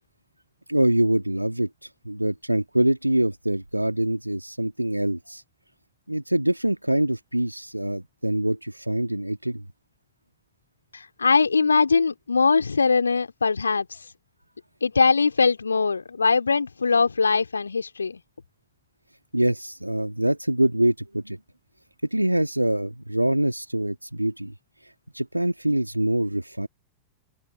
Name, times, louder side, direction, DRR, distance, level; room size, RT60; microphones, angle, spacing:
voice 1, 0.7-5.4 6.1-9.7 19.3-21.4 22.1-24.5 24.8-26.7, right 1 dB, 85° right, 1.9 m, -24 dB
voice 2, 10.9-13.9 14.8-18.2, left 4 dB, 75° left, 2.7 m, -21 dB
open air
figure-of-eight pair, 90°, 0 cm